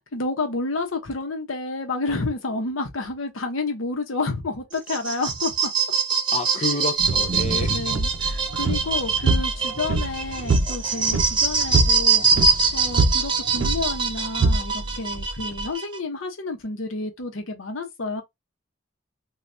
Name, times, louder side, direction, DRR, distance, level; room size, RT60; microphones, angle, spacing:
voice 1, 0.0-5.7 7.7-18.2, left 3 dB, 80° left, 0.8 m, -30 dB
sound 1, 4.7-16.0, right 5 dB, 25° right, 0.7 m, -24 dB
voice 2, 6.3-7.9, left 3 dB, 35° left, 0.3 m, -29 dB
sound 2, 7.0-15.7, right 3 dB, 70° right, 0.5 m, -25 dB
3.2 x 2.3 x 2.6 m
head